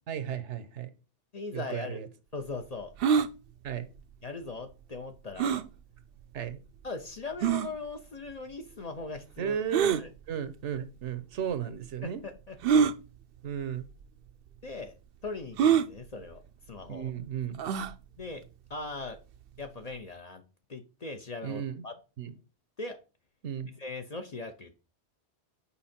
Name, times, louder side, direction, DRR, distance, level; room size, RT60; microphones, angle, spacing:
voice 1, 0.1-0.9 1.5-2.1 3.6-3.9 6.3-6.6 9.4-12.2 13.4-13.9 16.9-17.6 21.4-21.8 22.2-22.3 23.4-23.7, right 9 dB, 80° right, 1.1 m, -34 dB
voice 2, 1.3-2.0 2.3-2.9 4.2-5.6 6.8-9.6 10.0-10.1 12.0-12.6 14.6-16.4 16.7-17.1 18.2-18.4 18.7-19.2 19.6-20.4 20.7-21.9 22.8-23.0 23.8-24.7, left 3 dB, 40° left, 0.7 m, -39 dB
sound 1, 3.0-3.3 5.4-5.7 6.5-6.6 7.4-7.7 9.7-10.0 11.1-11.2 12.6-12.9 13.9-14.0 14.3-14.4 15.6-15.9 17.6-17.9, right 7 dB, 65° right, 0.7 m, -24 dB
5.6 x 4.7 x 4.2 m
omnidirectional pair, 1.2 m